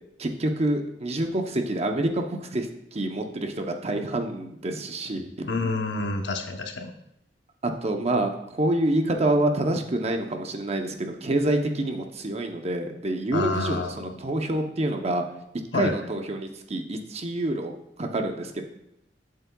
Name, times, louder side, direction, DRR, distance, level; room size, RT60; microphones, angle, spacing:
voice 1, 0.2-5.3 7.6-15.2 15.7-17.7 18.0-18.6, right 1 dB, 35° right, 4 dB, 0.7 m, -27 dB
voice 2, 5.4-6.9 13.3-14.1 15.7-15.9, left 3 dB, 75° left, 5 dB, 0.8 m, -28 dB
8.2 x 7.5 x 2.3 m, 0.82 s
head